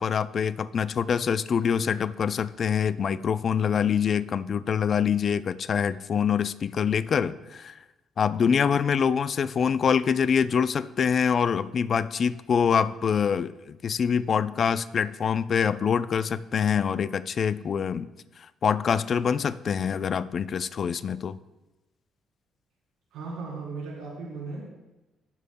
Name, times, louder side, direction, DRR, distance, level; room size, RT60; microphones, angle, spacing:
voice 1, 0.0-7.8 8.2-18.1 18.6-21.4, left 7 dB, 50° left, 15 dB, 0.4 m, -25 dB
voice 2, 23.1-24.6, right 4 dB, 85° right, -4 dB, 3.5 m, -36 dB
17.0 x 7.2 x 2.2 m, 1.0 s
cardioid pair, 80°, 0 cm